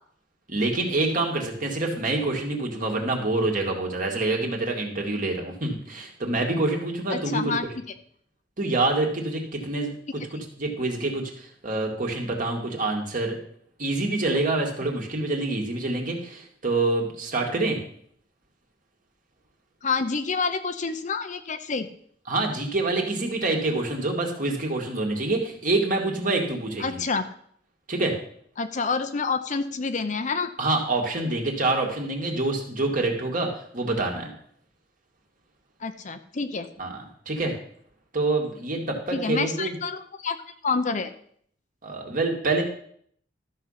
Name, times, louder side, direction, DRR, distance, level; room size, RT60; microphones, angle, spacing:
voice 1, 0.5-7.5 8.6-13.4 13.8-17.8 22.3-27.0 27.9-28.1 30.6-34.3 36.8-37.5 38.1-39.8 41.8-42.6, right 2 dB, 45° right, 1 dB, 2.2 m, -26 dB
voice 2, 7.1-7.6 19.8-21.9 26.8-27.2 28.6-30.5 35.8-36.7 39.1-40.4 40.6-41.1, left 4 dB, 40° left, 9 dB, 0.7 m, -28 dB
13.0 x 6.6 x 5.7 m, 0.63 s
head